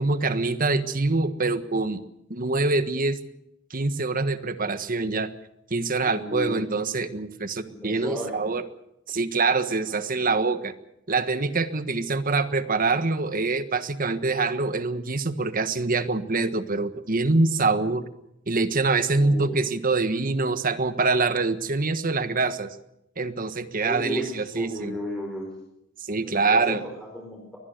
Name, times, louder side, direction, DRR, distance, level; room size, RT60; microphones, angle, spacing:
voice 1, 0.0-2.0 2.3-3.2 3.7-5.3 5.7-8.6 9.1-10.7 11.1-18.0 18.5-22.8 23.2-25.0 26.0-26.8, right 3 dB, 45° right, 11 dB, 1.5 m, -25 dB
voice 2, 6.0-6.6 7.7-8.4 10.0-10.1 19.1-19.6 23.8-25.5 26.2-27.6, equal, 5° left, -1 dB, 4.6 m, -34 dB
23.5 x 19.5 x 6.7 m, 0.83 s
head